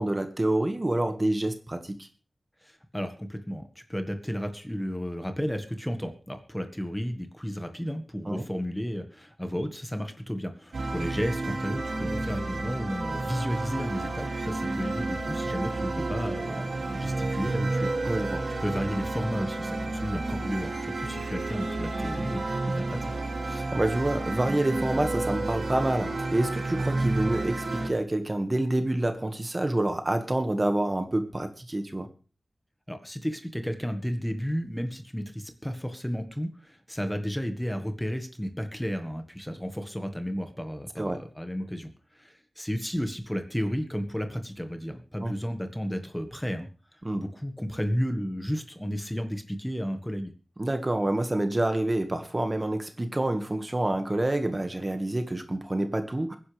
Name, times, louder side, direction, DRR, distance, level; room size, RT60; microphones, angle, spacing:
voice 1, 0.0-2.1 8.3-8.4 18.1-18.5 23.5-32.1 41.0-41.2 45.2-45.3 47.0-47.2 50.6-56.4, right 1 dB, 30° right, 7 dB, 1.8 m, -27 dB
voice 2, 2.6-17.9 18.6-23.1 32.9-50.3, equal, 5° left, 6 dB, 1.6 m, -33 dB
sound 1, 10.7-27.9, right 2 dB, 90° right, 2.7 m, -31 dB
23.0 x 10.5 x 3.4 m, 0.35 s
wide cardioid pair, 70°, 0 cm